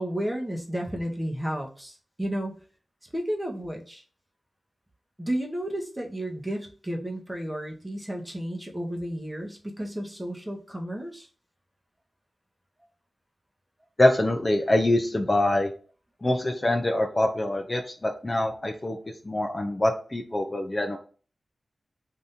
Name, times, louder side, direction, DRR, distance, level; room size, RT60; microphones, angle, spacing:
voice 1, 0.0-2.5 3.1-4.0 5.2-11.3, right 1 dB, 10° right, 0 dB, 0.9 m, -32 dB
voice 2, 14.0-15.7 16.2-19.0 19.2-21.0, left 1 dB, 30° left, 3 dB, 0.5 m, -24 dB
2.7 x 2.6 x 3.5 m, 0.39 s
wide cardioid pair, 65°, 0 cm